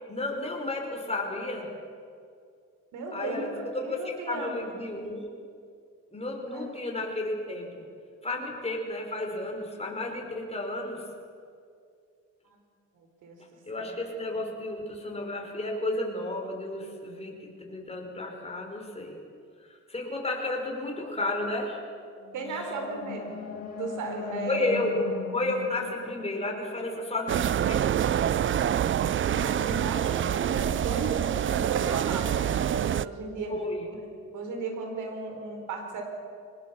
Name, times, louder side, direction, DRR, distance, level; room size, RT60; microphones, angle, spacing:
voice 1, 0.1-1.7 3.1-5.2 6.1-7.9 8.2-11.1 13.7-19.2 19.6-21.8 22.5-22.6 24.5-25.0 25.3-28.0 33.5-33.8, left 2 dB, 20° left, 1 dB, 5.1 m, -32 dB
voice 2, 2.9-4.5 6.5-6.7 12.9-13.4 13.8-13.9 22.3-23.3 23.8-24.7 29.0-33.5 33.8-34.0 34.3-36.0, right 3 dB, 85° right, 4 dB, 4.4 m, -36 dB
sound 1, 22.2-27.3, left 4 dB, 60° left, 5.2 m, -39 dB
sound 2, 27.3-33.1, right 10 dB, 40° right, 0.5 m, -26 dB
23.5 x 19.0 x 7.2 m, 2.3 s
cardioid pair, 90°, 30 cm